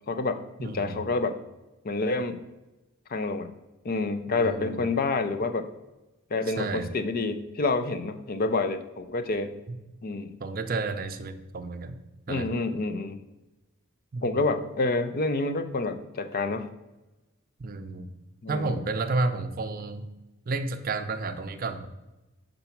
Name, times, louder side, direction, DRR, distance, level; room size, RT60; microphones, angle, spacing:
voice 1, 0.1-1.4 1.8-2.4 3.1-3.5 3.8-5.7 6.3-9.5 10.0-10.3 12.3-13.2 14.2-16.7 18.4-18.8, left 3 dB, 45° left, 10 dB, 0.5 m, -28 dB
voice 2, 0.6-1.0 4.3-4.8 6.6-6.9 9.7-9.8 10.4-12.0 12.3-12.6 14.1-14.4 17.6-18.1 18.5-20.1 20.5-21.9, right 3 dB, 45° right, 9 dB, 0.5 m, -31 dB
5.8 x 3.9 x 5.8 m, 1.0 s
head